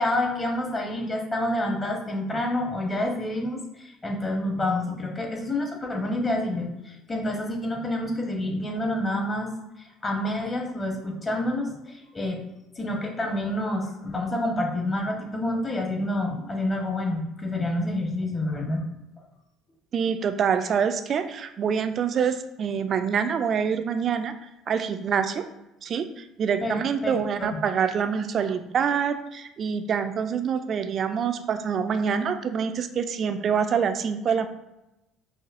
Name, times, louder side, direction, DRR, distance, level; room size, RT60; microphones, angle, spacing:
voice 1, 0.0-9.5 10.0-12.4 12.8-18.9 26.6-27.5, left 1 dB, 25° left, 1 dB, 1.1 m, -28 dB
voice 2, 19.9-24.3 24.7-25.4 25.8-34.5, right 7 dB, 50° right, 9 dB, 0.4 m, -26 dB
5.6 x 2.5 x 2.5 m, 0.93 s
hypercardioid pair, 65°, 0 cm